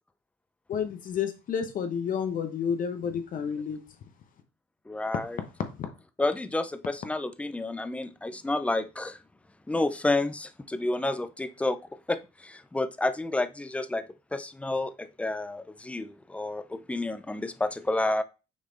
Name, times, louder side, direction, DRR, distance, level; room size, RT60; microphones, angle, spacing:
voice 1, 0.7-3.8, left 7 dB, 55° left, 0.9 m, -30 dB
voice 2, 4.9-5.4 6.2-9.2 9.7-11.8 12.1-14.0 14.3-18.2, left 2 dB, 5° left, 0.5 m, -30 dB
6.1 x 4.2 x 3.9 m
cardioid pair, 110°, 17 cm